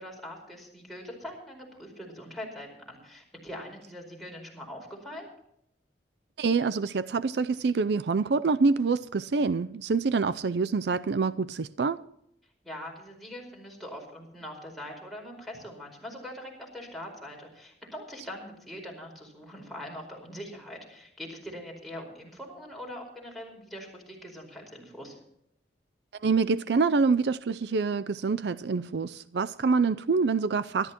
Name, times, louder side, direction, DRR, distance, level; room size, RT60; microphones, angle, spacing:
voice 1, 0.0-5.3 12.6-25.2, left 1 dB, ahead, 4.8 m, -42 dB
voice 2, 6.4-12.0 26.2-30.9, right 4 dB, 70° right, 0.5 m, -26 dB
24.5 x 12.5 x 3.0 m
head